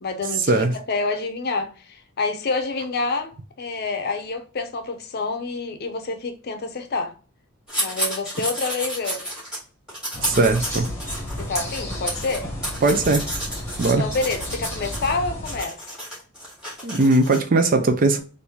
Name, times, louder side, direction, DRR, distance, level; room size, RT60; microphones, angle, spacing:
voice 1, 0.0-7.1 7.8-9.2 11.4-12.5 13.8-15.8, left 3 dB, 50° left, 0.6 m, -28 dB
sound 1, 7.7-9.6 9.9-15.2 15.4-17.4, equal, 5° right, 1.7 m, -31 dB
sound 2, 10.1-15.6, left 1 dB, 15° left, 1.0 m, -33 dB
voice 2, 10.2-10.9 12.8-13.3 13.8-14.0 16.8-18.2, right 2 dB, 40° right, 0.5 m, -19 dB
3.5 x 2.6 x 2.9 m
head